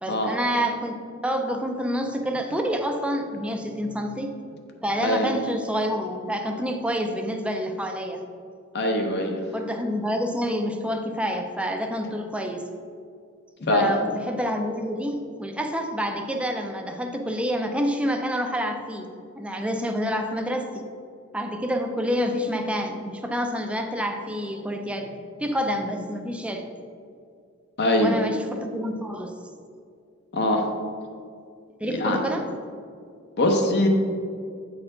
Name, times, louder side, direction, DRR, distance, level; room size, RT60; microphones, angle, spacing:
voice 1, 0.0-4.3 4.8-8.2 9.5-12.7 13.7-19.1 19.4-20.7 21.3-26.7 28.0-29.3 31.8-32.5, equal, 5° right, 4 dB, 0.5 m, -28 dB
voice 2, 5.0-5.3 8.7-9.4 13.6-13.9 27.8-28.1 30.3-30.7 31.9-32.2 33.4-33.9, left 1 dB, 50° left, 3 dB, 0.8 m, -22 dB
8.7 x 4.3 x 3.8 m, 2.3 s
head